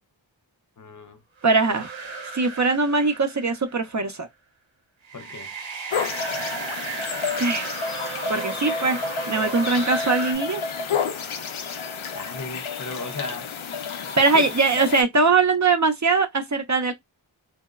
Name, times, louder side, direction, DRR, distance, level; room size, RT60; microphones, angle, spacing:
voice 1, 0.8-1.2 5.1-5.6 10.9-11.3 12.1-13.6 14.3-14.5, left 3 dB, 40° left, 0.5 m, -36 dB
voice 2, 1.4-2.0 2.3-4.3 7.4-7.7 8.3-9.0 9.3-10.6 14.2-16.9, right 3 dB, 40° right, 0.4 m, -21 dB
sound 1, 1.4-3.9 5.0-10.3, right 4 dB, 80° right, 0.7 m, -35 dB
sound 2, 5.9-15.0, left 5 dB, 85° left, 0.5 m, -30 dB
2.8 x 2.0 x 2.3 m
wide cardioid pair, 55°, 47 cm